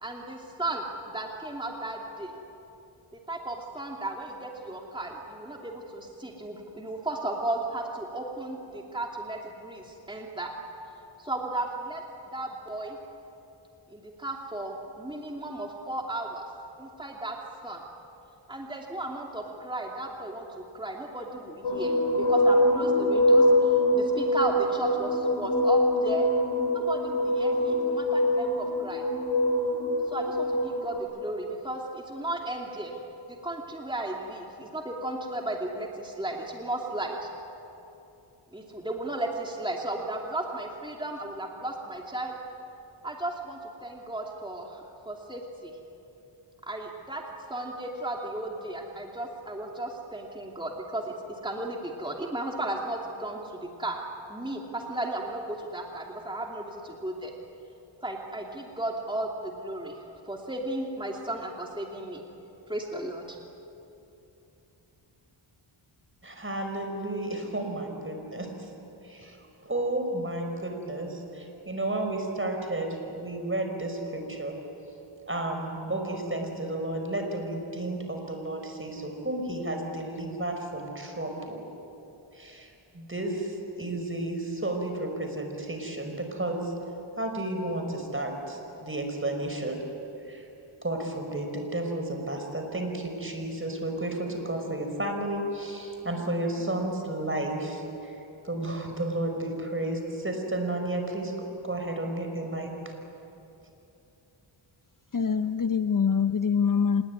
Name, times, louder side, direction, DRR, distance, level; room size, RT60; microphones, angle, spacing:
voice 1, 0.0-0.9 1.1-2.3 3.1-10.5 11.2-12.0 12.3-13.0 13.9-16.4 16.8-17.4 17.6-17.8 18.5-26.3 26.7-29.0 30.1-32.9 33.3-37.3 38.5-42.3 43.0-45.7 46.6-47.2 47.5-51.1 51.4-54.0 54.3-57.3 58.0-62.2 62.7-63.4, right 1 dB, 10° right, 0 dB, 2.7 m, -35 dB
sound 1, 21.6-31.0, left 1 dB, 65° left, 5.5 m, -24 dB
voice 2, 66.2-68.7 69.0-69.4 69.6-74.6 75.3-81.6 82.3-86.7 87.2-89.8 90.2-90.5 90.8-98.2 98.4-101.3 101.6-102.9, right 1 dB, 25° right, 4 dB, 5.4 m, -32 dB
voice 3, 105.1-107.0, left 6 dB, 40° left, 10 dB, 0.8 m, -24 dB
26.0 x 21.0 x 9.6 m, 2.9 s
wide cardioid pair, 75°, 49 cm